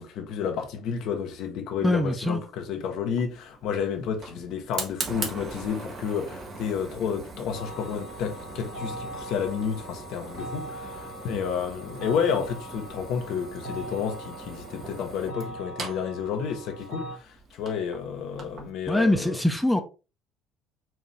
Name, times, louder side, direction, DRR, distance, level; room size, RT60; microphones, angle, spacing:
voice 1, 0.0-19.4, left 7 dB, 55° left, 0.6 m, -31 dB
voice 2, 1.8-2.4 18.9-19.8, left 1 dB, 5° left, 0.6 m, -23 dB
Fire, 3.0-18.7, right 3 dB, 40° right, 0.9 m, -41 dB
sound 1, 7.5-17.2, right 1 dB, 65° right, 1.4 m, -41 dB
4.2 x 2.6 x 3.0 m
figure-of-eight pair, 55°, 0 cm